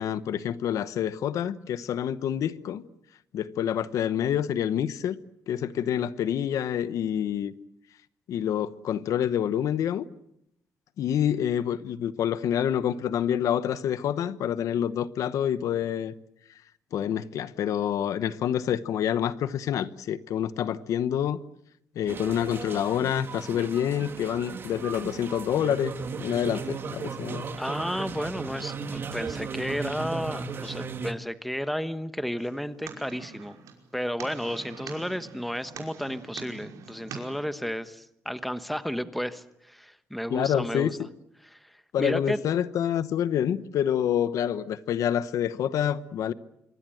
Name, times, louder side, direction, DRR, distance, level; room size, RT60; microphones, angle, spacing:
voice 1, 0.0-2.8 3.3-5.2 5.5-7.5 8.3-10.0 11.0-16.1 16.9-21.4 21.9-25.9 26.2-27.4 40.3-40.9 41.9-46.3, left 9 dB, 70° left, 1.0 m, -27 dB
sound 1, 22.1-31.1, right 5 dB, 40° right, 1.8 m, -36 dB
voice 2, 27.6-33.6 33.9-41.0 41.5-41.6 42.0-42.4, equal, ahead, 1.2 m, -32 dB
sound 2, 32.4-37.4, right 6 dB, 75° right, 5.5 m, -44 dB
25.5 x 23.5 x 7.8 m
cardioid pair, 150°, 6 cm